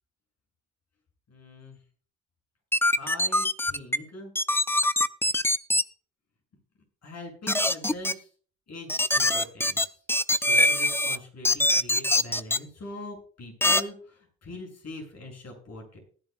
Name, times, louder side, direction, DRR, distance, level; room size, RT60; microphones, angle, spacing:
voice 1, 1.3-1.8 3.0-4.3 7.0-8.3 8.7-10.0 10.4-16.0, left 1 dB, 50° left, 2 dB, 7.1 m, -42 dB
sound 1, 2.7-4.0 4.4-5.8 7.5-8.1 8.9-11.2 11.4-12.6 13.6-13.8, left 1 dB, 5° left, 0.6 m, -23 dB
19.0 x 10.5 x 2.3 m, 0.42 s
supercardioid pair, 65°, 33 cm